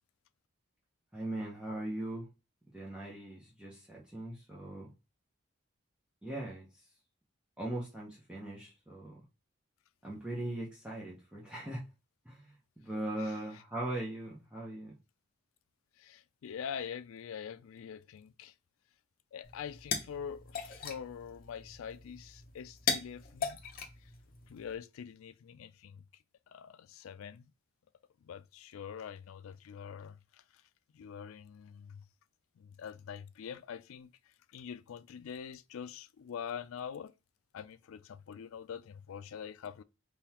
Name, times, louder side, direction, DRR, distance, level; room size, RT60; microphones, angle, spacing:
voice 1, 1.1-2.3 2.7-4.9 6.2-6.7 7.6-9.1 10.0-11.8 12.3-12.4 12.8-14.9, right 1 dB, 5° right, 0.8 m, -39 dB
voice 2, 13.2-13.6 16.0-18.5 19.3-23.6 24.0-24.1 24.5-26.0 26.5-27.5 28.2-30.6 30.9-32.1 32.6-37.1 37.5-39.8, left 7 dB, 80° left, 0.3 m, -45 dB
sound 1, 19.4-24.7, left 5 dB, 40° left, 0.7 m, -39 dB
3.8 x 3.4 x 2.9 m
head